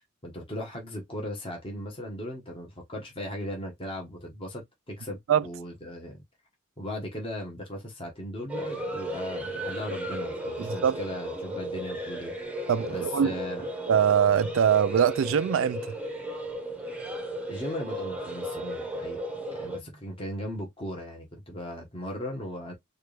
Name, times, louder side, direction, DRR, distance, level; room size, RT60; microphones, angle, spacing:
voice 1, 0.2-6.2 6.8-12.3 12.9-13.6 17.5-19.2 19.6-22.7, left 1 dB, 25° left, 1.2 m, -37 dB
sound 1, 8.5-19.8, right 1 dB, 5° right, 0.8 m, -35 dB
voice 2, 10.6-11.0 12.7-13.4 13.9-15.9, right 8 dB, 75° right, 0.3 m, -23 dB
4.5 x 2.4 x 3.3 m
head